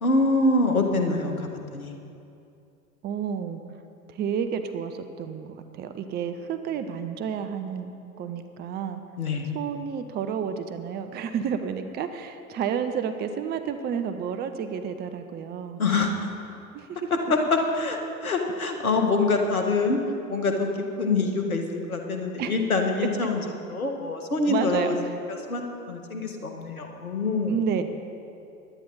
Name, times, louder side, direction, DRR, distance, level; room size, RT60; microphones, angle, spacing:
voice 1, 0.0-1.9 9.2-9.5 15.8-16.1 17.1-20.0 20.3-20.7 21.0-23.4 23.7-24.9 25.5-25.6 25.9-27.6, left 3 dB, 75° left, 4 dB, 1.6 m, -25 dB
voice 2, 3.0-3.6 4.1-9.0 9.5-15.8 16.7-17.1 22.4-22.6 24.4-25.2 27.5-27.8, right 7 dB, 25° right, 8 dB, 0.7 m, -30 dB
18.0 x 11.5 x 4.1 m, 2.6 s
figure-of-eight pair, 80°, 43 cm